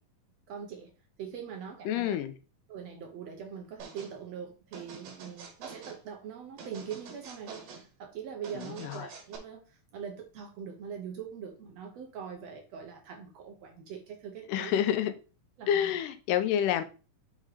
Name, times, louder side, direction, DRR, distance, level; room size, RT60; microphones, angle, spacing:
voice 1, 0.5-0.9 1.2-2.2 2.7-14.8 15.6-15.9, right 7 dB, 65° right, 1.8 m, -42 dB
voice 2, 1.9-2.3 8.5-9.1 14.5-15.1 15.7-16.8, left 10 dB, 85° left, 2.2 m, -28 dB
sound 1, 3.8-4.1 4.7-6.0 6.6-7.9 8.4-9.4, right 5 dB, 90° right, 3.2 m, -46 dB
6.5 x 3.7 x 4.8 m
omnidirectional pair, 3.8 m